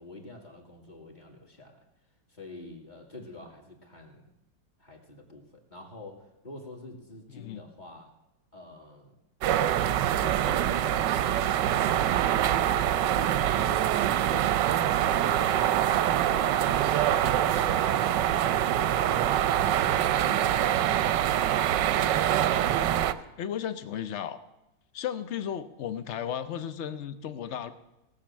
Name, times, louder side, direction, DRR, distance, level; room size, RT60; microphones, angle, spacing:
voice 1, 0.0-1.9 2.3-4.3 4.8-8.1 8.5-9.1 10.1-12.5 13.1-14.0 14.3-15.7 16.0-22.1, left 2 dB, 25° left, 2 dB, 2.1 m, -47 dB
voice 2, 7.3-7.6 20.1-20.5 23.4-24.4 24.9-27.7, left 9 dB, 70° left, 12 dB, 0.6 m, -35 dB
sound 1, 9.4-23.1, right 11 dB, 70° right, 1.2 m, -25 dB
18.0 x 6.6 x 7.4 m, 0.94 s
omnidirectional pair, 2.2 m